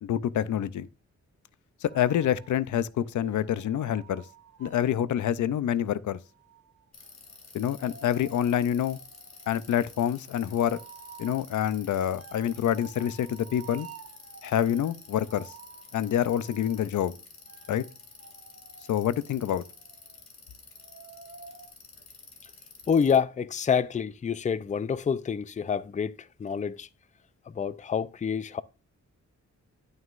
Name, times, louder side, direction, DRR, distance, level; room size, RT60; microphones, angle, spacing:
voice 1, 0.0-0.9 1.8-4.2 4.6-6.2 7.5-9.0 9.5-10.8 11.2-13.9 14.4-15.5 15.9-17.1 17.7-17.8 18.9-19.6, left 10 dB, 80° left, 0.5 m, -27 dB
sound 1, 1.9-4.9 6.2-20.2 20.8-21.7, right 7 dB, 50° right, 1.2 m, -52 dB
Bicycle, 6.9-23.2, left 4 dB, 60° left, 2.5 m, -50 dB
voice 2, 22.9-26.9 27.5-28.6, left 6 dB, 25° left, 0.4 m, -27 dB
11.0 x 6.3 x 2.5 m
cardioid pair, 80°, 30 cm